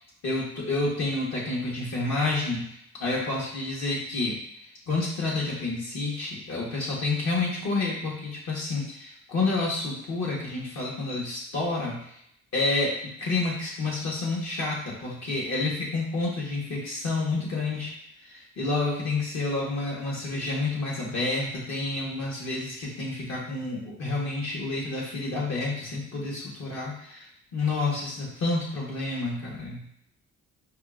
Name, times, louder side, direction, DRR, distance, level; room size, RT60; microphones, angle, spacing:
voice 1, 0.2-12.2 12.5-17.9 18.2-27.3 27.5-29.8, left 3 dB, 65° left, -3 dB, 1.4 m, -29 dB
5.0 x 2.4 x 2.5 m, 0.72 s
cardioid pair, 90°, 30 cm